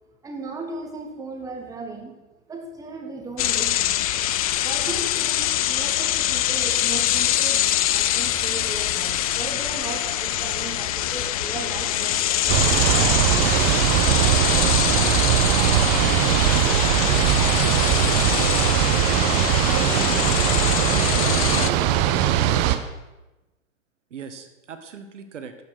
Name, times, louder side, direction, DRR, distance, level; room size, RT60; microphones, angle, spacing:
voice 1, 0.2-2.2 2.5-4.1 4.6-12.9, right 3 dB, 10° right, 3 dB, 1.3 m, -36 dB
sound 1, 3.4-21.7, left 12 dB, 30° left, 0.4 m, -24 dB
sound 2, 12.5-22.8, right 11 dB, 25° right, 0.6 m, -20 dB
voice 2, 17.0-17.5 19.8-20.2 20.8-21.5 24.1-25.5, right 6 dB, 65° right, 9 dB, 1.3 m, -36 dB
11.5 x 7.2 x 6.4 m, 1.1 s
figure-of-eight pair, 115°, 38 cm